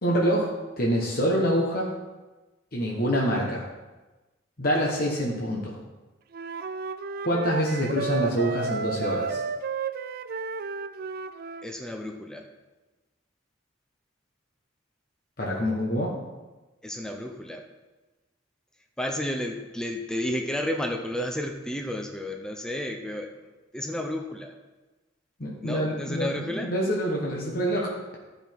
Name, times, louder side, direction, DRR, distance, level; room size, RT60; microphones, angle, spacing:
voice 1, 0.0-1.9 2.7-3.6 4.6-5.8 7.2-9.4 15.4-16.2 25.4-28.2, equal, 50° left, -3 dB, 1.3 m, -26 dB
Wind instrument woodwind instrument, 6.3-11.7, right 5 dB, 50° right, 0.3 m, -32 dB
voice 2, 11.6-12.5 16.8-17.6 19.0-23.3 23.7-24.5 25.6-26.7, left 1 dB, 5° left, 2 dB, 0.6 m, -32 dB
12.5 x 5.4 x 4.6 m, 1.2 s
head